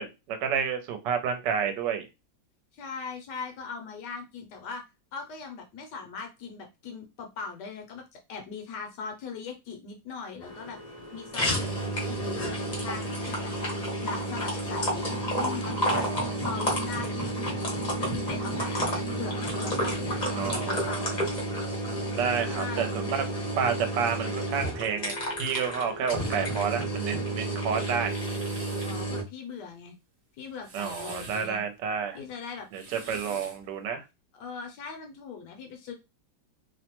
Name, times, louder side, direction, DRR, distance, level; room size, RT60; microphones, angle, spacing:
voice 1, 0.0-2.1 15.9-16.3 20.3-21.1 22.1-23.2 23.6-25.1 25.4-28.2 30.7-32.2 32.7-34.0, right 7 dB, 75° right, 6 dB, 1.2 m, -30 dB
voice 2, 2.7-4.8 5.1-8.0 8.3-10.8 11.1-11.6 12.1-13.5 14.0-15.1 15.4-16.1 16.4-21.3 22.4-23.0 28.8-29.9 30.4-31.6 32.1-32.7 34.3-35.9, left 5 dB, 70° left, 3 dB, 1.1 m, -40 dB
sound 1, 10.4-29.2, right 1 dB, 40° left, 0.6 m, -31 dB
sound 2, 27.8-29.1 30.4-31.5 32.6-33.7, right 2 dB, 45° right, 1.0 m, -45 dB
3.1 x 2.1 x 2.9 m, 0.25 s
omnidirectional pair, 2.0 m